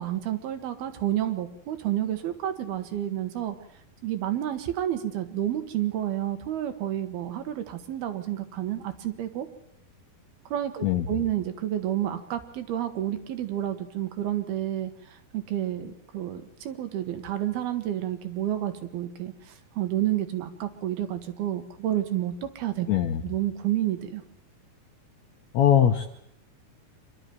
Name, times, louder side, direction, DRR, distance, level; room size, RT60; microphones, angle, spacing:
voice 1, 0.0-3.6 4.0-9.5 10.5-22.9 23.2-24.2, right 12 dB, 80° right, 9 dB, 3.3 m, -30 dB
voice 2, 10.8-11.2 22.9-23.2 25.5-26.1, left 9 dB, 75° left, 5 dB, 1.7 m, -21 dB
25.5 x 12.0 x 9.3 m, 0.74 s
omnidirectional pair, 4.4 m